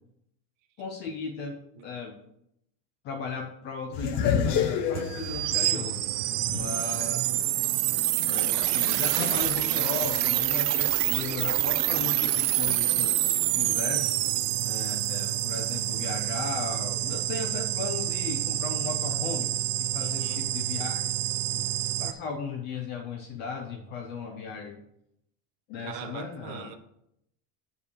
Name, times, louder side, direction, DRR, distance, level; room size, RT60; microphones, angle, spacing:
voice 1, 0.8-2.2 3.0-7.2 8.2-13.1 13.5-14.2 14.6-19.5 19.8-21.0 21.5-21.7 22.0-24.8 25.7-26.7, left 5 dB, 25° left, 0.4 m, -36 dB
sound 1, 3.9-7.0 7.5-7.6 9.2-9.5, left 7 dB, 40° left, 1.0 m, -29 dB
sound 2, 4.9-22.1, right 14 dB, 80° right, 0.9 m, -27 dB
voice 2, 6.5-7.0 20.0-20.5 25.8-26.8, right 9 dB, 50° right, 1.0 m, -43 dB
9.4 x 5.4 x 6.5 m
cardioid pair, 180°, 50 cm